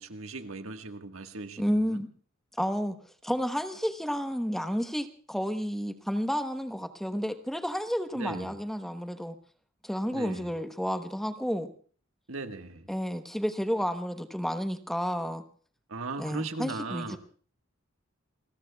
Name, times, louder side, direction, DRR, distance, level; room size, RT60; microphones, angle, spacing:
voice 1, 0.0-2.0 8.1-8.5 10.1-10.4 12.3-12.9 15.9-17.2, right 3 dB, 70° right, 1.5 m, -38 dB
voice 2, 1.6-2.1 2.6-3.0 3.2-9.3 9.8-11.7 12.9-15.4 16.2-17.2, equal, ahead, 1.0 m, -31 dB
29.0 x 21.0 x 2.3 m
head